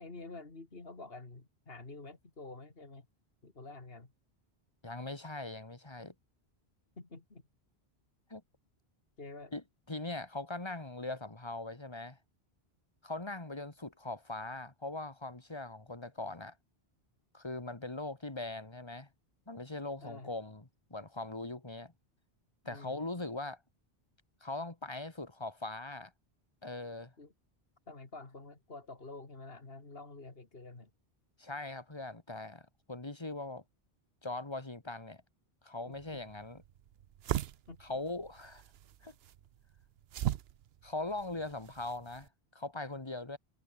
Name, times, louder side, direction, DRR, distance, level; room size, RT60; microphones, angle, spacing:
voice 1, 0.0-3.1 3.4-4.1 7.0-7.4 9.2-9.5 20.0-20.3 22.6-23.0 27.2-27.3 27.9-30.9 35.8-36.2 37.7-37.9, left 3 dB, 65° left, 3.0 m, -48 dB
voice 2, 4.8-6.1 8.3-8.4 9.5-9.6 9.9-12.2 13.0-16.6 17.3-19.1 19.5-20.6 20.9-21.9 22.7-23.6 24.4-26.1 26.6-27.1 31.4-33.6 34.2-35.2 35.6-36.6 37.8-38.6 39.0-39.1 40.8-43.4, left 2 dB, 25° left, 2.1 m, -40 dB
sound 1, 35.9-42.3, right 11 dB, 70° right, 0.8 m, -40 dB
omnidirectional pair, 1.1 m